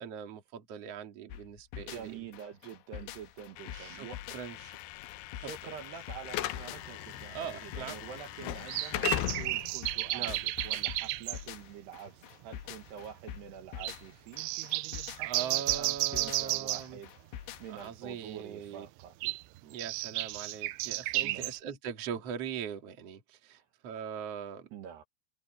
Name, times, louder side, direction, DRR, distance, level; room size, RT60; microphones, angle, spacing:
voice 1, 0.0-2.2 3.6-4.8 5.4-5.5 7.3-8.0 10.1-10.4 15.2-17.0 17.7-18.9 19.2-19.3 19.6-24.7, right 8 dB, 40° right, 2.5 m, -41 dB
sound 1, 1.3-17.9, left 11 dB, 75° left, 3.2 m, -46 dB
voice 2, 1.7-4.2 5.3-17.1 17.6-19.2 21.2-21.5 23.5-23.7 24.7-25.0, right 8 dB, 65° right, 3.4 m, -47 dB
Slam / Alarm, 3.6-11.6, left 15 dB, 90° left, 2.2 m, -39 dB
sound 2, 6.4-6.5 7.3-7.4 8.7-11.4 12.1-12.2 12.4-12.5 12.9-13.2 13.8-14.0 14.4-16.9 19.0-21.6, right 19 dB, 80° right, 2.7 m, -33 dB
omnidirectional pair, 5.6 m